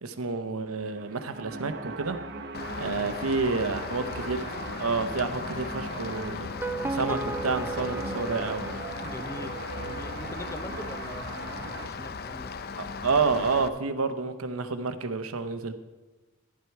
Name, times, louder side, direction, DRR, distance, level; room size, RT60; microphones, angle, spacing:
voice 1, 0.0-2.2 2.8-4.5 4.8-6.5 6.8-8.6 12.8-15.7, right 4 dB, 75° right, 10 dB, 0.9 m, -29 dB
sound 1, 0.8-11.9, right 3 dB, 50° right, 1.0 m, -40 dB
Rain, 2.5-13.7, left 5 dB, 45° left, 0.6 m, -37 dB
voice 2, 2.8-3.3 9.0-12.5, left 1 dB, 15° left, 9 dB, 0.7 m, -43 dB
sound 2, 6.4-9.5, right 3 dB, 10° right, 0.3 m, -35 dB
11.5 x 11.0 x 4.6 m, 1.2 s
head